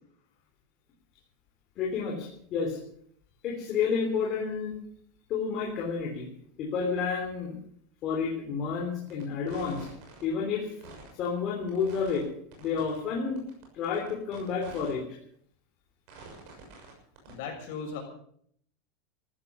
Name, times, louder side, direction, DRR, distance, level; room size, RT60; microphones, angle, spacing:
voice 1, 1.8-2.8 3.4-4.8 5.3-6.3 6.6-7.5 8.0-9.9 10.2-10.7 11.2-12.3 12.6-13.4 13.7-15.0, left 5 dB, 30° left, -2 dB, 3.3 m, -30 dB
sound 1, 9.1-9.2 9.5-10.2 10.7-11.3 11.7-12.2 12.5-13.0 13.4-14.9 15.3-15.4 16.1-16.9 17.2-17.3, right 4 dB, 45° right, 6.5 m, -47 dB
voice 2, 17.3-18.0, left 5 dB, 55° left, 1 dB, 6.6 m, -37 dB
14.5 x 14.0 x 7.0 m, 0.66 s
supercardioid pair, 175°, 0 cm